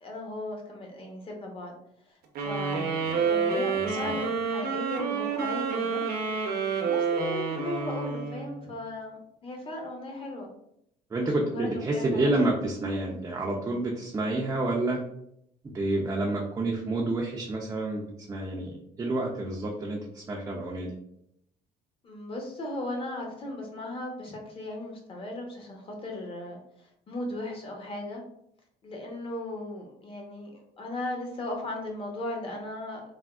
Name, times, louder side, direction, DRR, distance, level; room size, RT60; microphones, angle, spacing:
voice 1, 0.0-1.8 2.1-2.2 2.4-6.1 6.8-10.5 11.2-12.3 22.0-26.6 27.1-28.2 28.8-33.0, left 1 dB, 30° left, 1 dB, 0.8 m, -37 dB
sound 1, 2.4-8.8, right 5 dB, 65° right, 0.6 m, -29 dB
voice 2, 3.0-3.3 3.8-4.2 11.1-15.0 15.7-20.9, right 2 dB, 20° right, -2 dB, 0.4 m, -29 dB
3.4 x 2.0 x 2.3 m, 0.74 s
cardioid pair, 110°, 17 cm